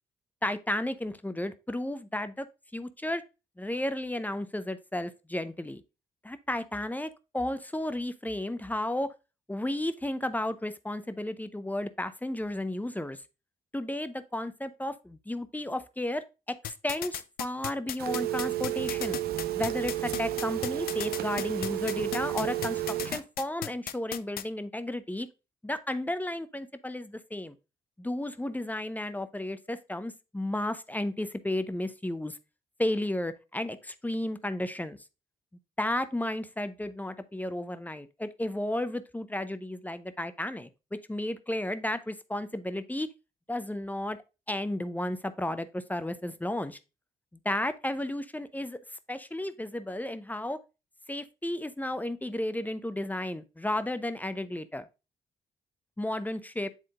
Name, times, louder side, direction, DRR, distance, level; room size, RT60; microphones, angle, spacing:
voice 1, 0.4-2.5 2.7-3.2 3.6-5.8 6.2-9.1 9.5-13.2 13.7-19.2 19.5-25.3 25.6-27.6 28.0-32.4 32.8-35.0 35.8-43.1 43.5-44.2 44.5-46.8 47.4-48.8 49.1-50.6 51.1-54.9 56.0-56.7, left 1 dB, 10° left, 0.7 m, -33 dB
sound 1, 16.6-24.4, left 11 dB, 65° left, 0.5 m, -35 dB
Telephone, 18.0-23.2, right 14 dB, 70° right, 0.7 m, -32 dB
7.7 x 3.6 x 3.7 m
supercardioid pair, 50°, 16 cm